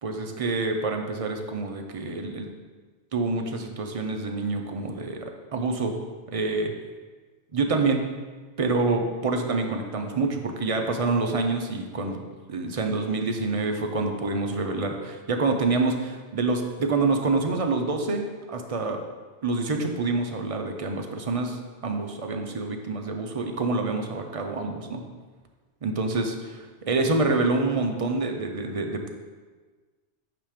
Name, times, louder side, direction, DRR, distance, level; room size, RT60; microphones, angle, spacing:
voice 1, 0.0-2.5 3.1-6.0 6.3-6.7 7.5-8.0 8.6-12.2 12.5-18.2 18.5-19.0 19.4-25.0 25.8-29.1, right 3 dB, 40° right, 4 dB, 0.5 m, -27 dB
8.8 x 3.0 x 4.9 m, 1.4 s
omnidirectional pair, 1.1 m